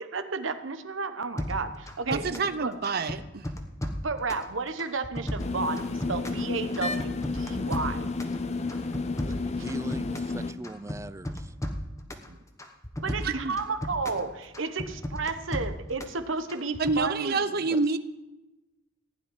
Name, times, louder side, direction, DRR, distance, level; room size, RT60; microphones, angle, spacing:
voice 1, 0.0-2.7 4.0-8.1 13.0-17.5, right 4 dB, 80° right, 10 dB, 1.0 m, -32 dB
sound 1, 1.4-2.6 2.8-4.5 4.8-6.5 6.7-8.4 8.7-10.4 10.6-12.3 12.6-14.2 14.5-16.2 16.5-17.0, left 1 dB, 15° left, 1.1 m, -35 dB
voice 2, 2.1-3.5 12.3-12.4 13.2-13.6 16.8-18.0, right 4 dB, 55° right, 12 dB, 0.7 m, -28 dB
sound 2, 5.4-10.5, left 3 dB, 35° left, 0.7 m, -31 dB
voice 3, 9.5-11.5 17.7-18.0, right 2 dB, 15° right, 16 dB, 0.3 m, -40 dB
15.5 x 5.3 x 9.7 m, 1.0 s
head